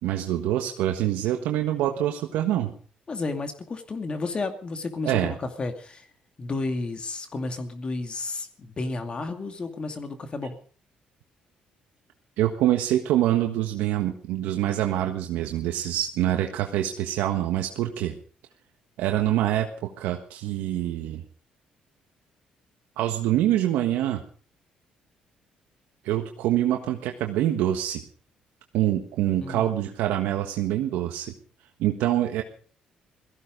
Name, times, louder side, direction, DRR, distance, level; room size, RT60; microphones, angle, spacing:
voice 1, 0.0-2.7 5.0-5.3 12.4-18.1 19.0-21.2 23.0-24.2 26.0-28.0 28.7-31.3 31.8-32.4, right 12 dB, 85° right, 4 dB, 1.5 m, -25 dB
voice 2, 3.1-6.1 6.4-10.6 29.4-29.7, left 3 dB, 40° left, 6 dB, 2.4 m, -32 dB
17.5 x 15.0 x 5.2 m, 0.44 s
cardioid pair, 75°, 3 cm